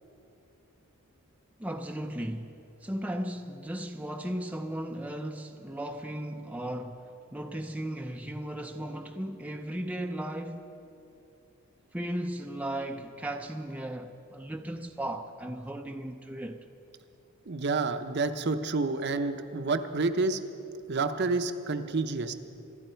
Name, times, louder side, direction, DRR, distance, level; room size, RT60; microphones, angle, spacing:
voice 1, 1.6-2.6 2.8-10.7 11.9-16.6, right 1 dB, 5° right, 0.5 m, -36 dB
voice 2, 17.5-20.4 20.9-22.3, right 3 dB, 50° right, 0.7 m, -29 dB
26.0 x 11.5 x 4.5 m
head